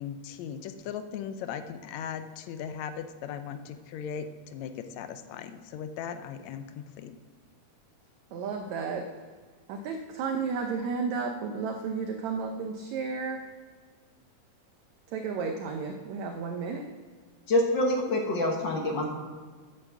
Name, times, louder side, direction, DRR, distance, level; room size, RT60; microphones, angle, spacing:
voice 1, 0.0-7.2, left 8 dB, 80° left, 9 dB, 1.6 m, -38 dB
voice 2, 8.3-9.1 9.7-13.4 15.1-16.8, right 5 dB, 70° right, 4 dB, 1.8 m, -32 dB
voice 3, 17.5-19.0, left 1 dB, 60° left, 1 dB, 1.2 m, -26 dB
9.2 x 7.6 x 7.3 m, 1.5 s
omnidirectional pair, 3.8 m